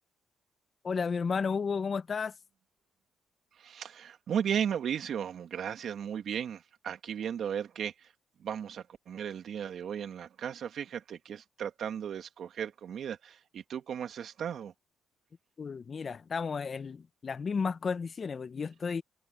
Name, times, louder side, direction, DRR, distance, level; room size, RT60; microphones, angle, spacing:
voice 1, 0.8-2.3 15.6-19.0, left 5 dB, 40° left, 0.7 m, -33 dB
voice 2, 3.6-8.1 8.4-14.7, right 8 dB, 65° right, 2.3 m, -35 dB
cardioid pair, 90°, 0 cm